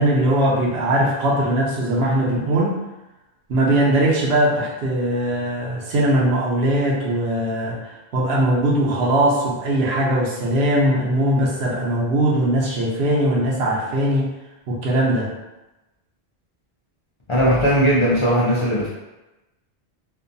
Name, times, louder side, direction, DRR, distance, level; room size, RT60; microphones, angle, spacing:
voice 1, 0.0-2.8 3.5-14.3 14.7-15.3, right 1 dB, 80° right, -3 dB, 0.9 m, -20 dB
voice 2, 17.3-18.9, equal, 50° left, -8 dB, 0.4 m, -18 dB
2.5 x 2.2 x 2.6 m, 1.0 s
omnidirectional pair, 1.1 m